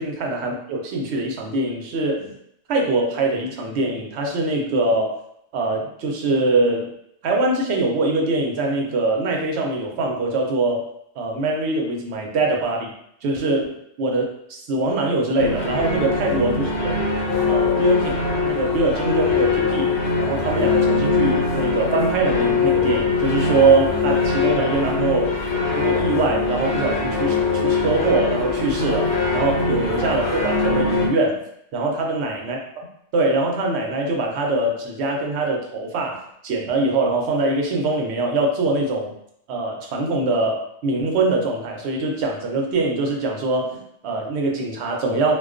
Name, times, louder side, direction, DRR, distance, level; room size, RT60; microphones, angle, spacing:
voice 1, 0.0-2.4 2.7-5.2 5.5-6.9 7.2-10.8 11.2-12.9 13.2-17.0 17.5-25.4 25.7-31.4 31.7-32.9 33.1-39.1 39.5-45.3, right 2 dB, 70° right, 1 dB, 0.8 m, -23 dB
sound 1, 15.4-31.1, left 4 dB, 75° left, 0.9 m, -22 dB
2.3 x 2.2 x 2.4 m, 0.73 s
omnidirectional pair, 1.2 m